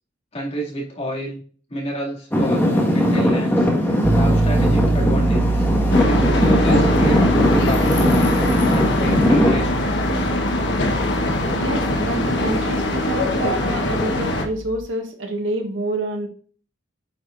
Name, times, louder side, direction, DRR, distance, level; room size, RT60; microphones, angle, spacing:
voice 1, 0.3-1.4 1.7-3.7 4.1-5.7 6.1-8.2 8.7-10.0, right 1 dB, 35° left, -3 dB, 2.4 m, -29 dB
Traffic noise roadway noise / Engine, 2.3-9.6, left 1 dB, 10° left, 1.6 m, -19 dB
Piano, 4.0-14.9, right 2 dB, 20° right, 0.4 m, -25 dB
sound 1, 5.9-14.5, left 2 dB, 65° left, 1.2 m, -22 dB
voice 2, 11.6-16.3, right 1 dB, 75° right, 3 dB, 1.5 m, -27 dB
9.1 x 4.9 x 2.6 m, 0.44 s
head